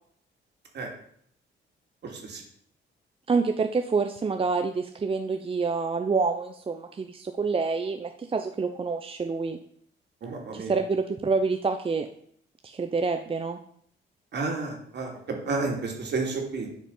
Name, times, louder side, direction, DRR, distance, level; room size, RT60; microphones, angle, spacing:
voice 1, 2.0-2.4 10.2-10.7 14.3-15.1 15.5-16.7, right 3 dB, 60° right, 1 dB, 2.9 m, -31 dB
voice 2, 3.3-9.6 10.5-12.1 12.6-13.6, right 4 dB, 25° right, 6 dB, 0.7 m, -27 dB
9.9 x 5.0 x 5.6 m, 0.64 s
cardioid pair, 90°, 20 cm